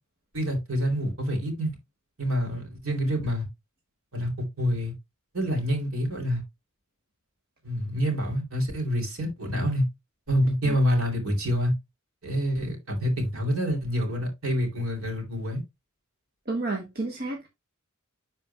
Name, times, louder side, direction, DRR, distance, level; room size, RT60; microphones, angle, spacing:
voice 1, 0.3-1.7 2.2-3.4 4.1-4.9 5.3-6.4 7.6-9.8 10.3-11.7 12.2-15.6, equal, 65° right, 2.8 m, -27 dB
voice 2, 16.5-17.5, right 2 dB, 45° right, 1.3 m, -31 dB
11.0 x 4.4 x 2.2 m
head